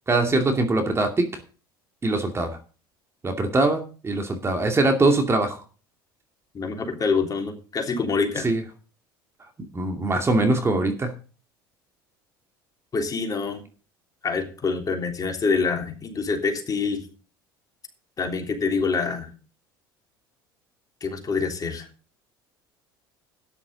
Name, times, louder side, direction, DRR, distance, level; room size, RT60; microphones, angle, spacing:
voice 1, 0.1-1.2 2.0-2.6 3.2-5.6 8.4-8.6 9.7-11.1, right 2 dB, 20° right, 4 dB, 2.5 m, -22 dB
voice 2, 6.5-8.5 12.9-13.6 14.2-17.1 18.2-19.3 21.0-21.9, left 4 dB, 30° left, 3 dB, 3.3 m, -26 dB
13.0 x 10.0 x 4.0 m, 0.37 s
hypercardioid pair, 65°, 12 cm